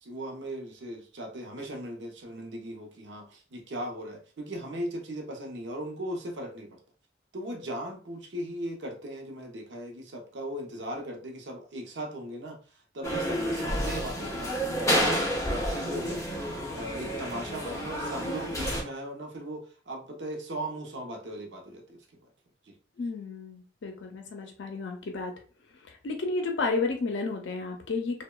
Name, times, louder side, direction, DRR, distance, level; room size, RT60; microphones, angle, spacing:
voice 1, 0.0-6.8 7.3-22.1 22.6-22.8, right 1 dB, 70° right, 2 dB, 0.6 m, -38 dB
sound 1, 13.0-18.8, equal, 15° left, 0.6 m, -30 dB
voice 2, 23.0-25.3 26.0-28.2, left 3 dB, 80° left, 3 dB, 0.5 m, -32 dB
2.8 x 2.1 x 2.2 m, 0.39 s
head